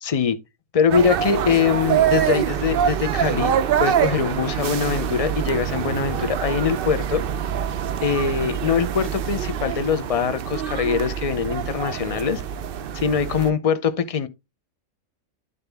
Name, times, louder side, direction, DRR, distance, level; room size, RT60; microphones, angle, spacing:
voice 1, 0.0-0.4 0.7-3.5 3.8-7.2 8.0-12.4 12.9-14.3, left 6 dB, 40° left, 0.5 m, -22 dB
sound 1, 0.9-13.5, right 9 dB, 60° right, 0.6 m, -25 dB
11.0 x 4.0 x 3.4 m
omnidirectional pair, 1.3 m